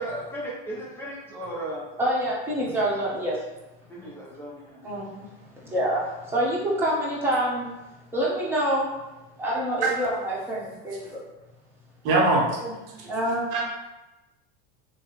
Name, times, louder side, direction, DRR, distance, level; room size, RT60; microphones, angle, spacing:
voice 1, 0.0-1.9 3.9-4.8, right 1 dB, 10° left, -7 dB, 0.8 m, -35 dB
voice 2, 2.0-3.4 4.8-5.3 5.6-7.7 8.1-8.9 9.4-11.2 12.5-12.7 13.1-13.5, right 1 dB, 10° right, -7 dB, 1.1 m, -26 dB
voice 3, 12.0-12.4 13.0-13.1 13.5-13.6, right 2 dB, 60° right, -2 dB, 0.8 m, -21 dB
3.1 x 2.2 x 3.1 m, 1.0 s
supercardioid pair, 100°, 29 cm